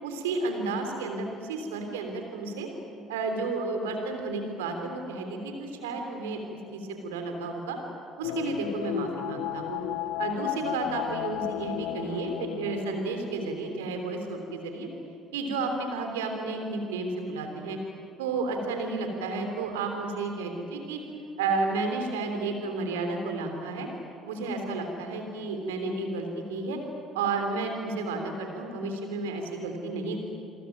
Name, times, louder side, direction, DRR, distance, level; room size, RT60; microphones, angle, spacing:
voice 1, 0.0-2.7 3.1-7.8 8.2-9.8 10.2-14.9 15.3-17.8 18.2-21.0 21.4-23.9 24.2-26.8 27.1-30.2, right 3 dB, 75° right, 4 dB, 3.3 m, -32 dB
sound 1, 8.2-14.2 14.5-14.6, left 14 dB, 65° left, 0.8 m, -34 dB
28.5 x 22.5 x 9.2 m, 2.7 s
figure-of-eight pair, 50°, 0 cm